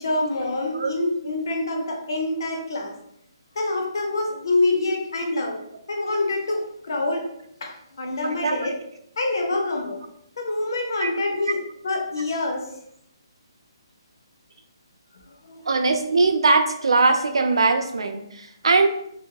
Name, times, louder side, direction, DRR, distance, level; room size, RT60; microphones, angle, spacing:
voice 1, 0.0-2.9 3.6-5.6 5.9-7.2 7.6-8.7 9.2-10.0 10.4-12.7 15.4-15.6, left 2 dB, 50° left, 1 dB, 0.6 m, -26 dB
voice 2, 8.2-8.7 11.0-11.1 15.7-18.9, right 3 dB, 80° right, 6 dB, 0.4 m, -21 dB
2.7 x 2.2 x 2.8 m, 0.74 s
hypercardioid pair, 180°, 3 cm